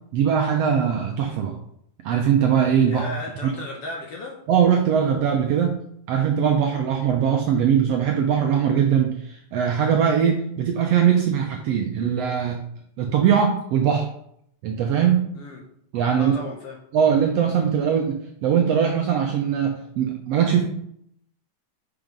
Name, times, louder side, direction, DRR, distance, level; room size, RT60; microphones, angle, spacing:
voice 1, 0.1-1.6 2.0-3.1 4.5-5.8 6.1-12.6 13.0-14.1 14.6-15.3 15.9-16.3 16.9-20.6, right 8 dB, 75° right, 2 dB, 1.6 m, -21 dB
voice 2, 2.9-4.4 15.3-15.6 16.2-16.8, left 2 dB, 65° left, 0 dB, 1.6 m, -34 dB
5.9 x 5.6 x 5.2 m, 0.69 s
omnidirectional pair, 3.6 m